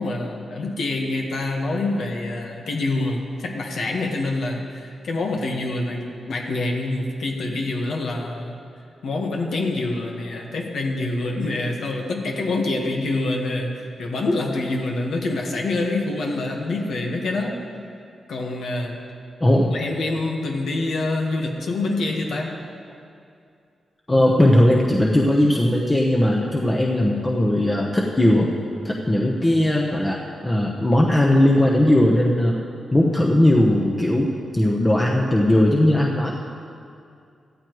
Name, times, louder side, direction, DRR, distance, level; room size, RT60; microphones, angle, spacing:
voice 1, 0.0-8.5 9.0-17.6 18.3-19.0 19.7-22.6, left 2 dB, 75° left, 1 dB, 1.4 m, -26 dB
voice 2, 19.4-19.7 24.1-28.5 28.8-32.5 32.9-36.3, left 1 dB, 20° left, -2 dB, 1.0 m, -18 dB
14.5 x 14.0 x 3.1 m, 2.5 s
cardioid pair, 80°, 0 cm